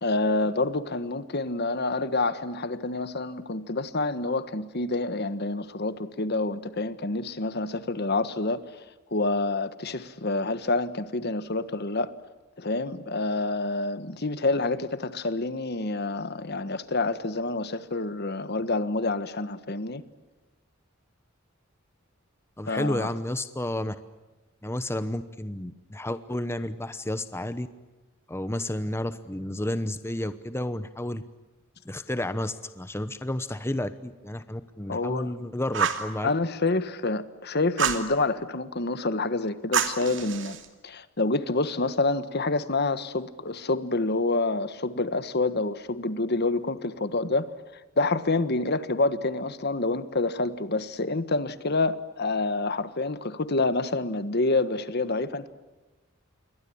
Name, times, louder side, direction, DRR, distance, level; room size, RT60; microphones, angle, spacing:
voice 1, 0.0-8.8 9.1-12.1 12.6-20.0 22.7-23.1 34.9-35.3 36.2-40.6 40.8-47.5 48.0-55.5, left 2 dB, 55° left, 1.5 m, -27 dB
voice 2, 22.6-24.0 24.6-27.7 28.3-31.2 31.8-36.3, left 1 dB, 10° left, 0.9 m, -31 dB
Fire, 35.7-36.1 37.8-38.1 39.7-40.6, right 6 dB, 65° right, 2.8 m, -27 dB
28.5 x 23.5 x 8.7 m
head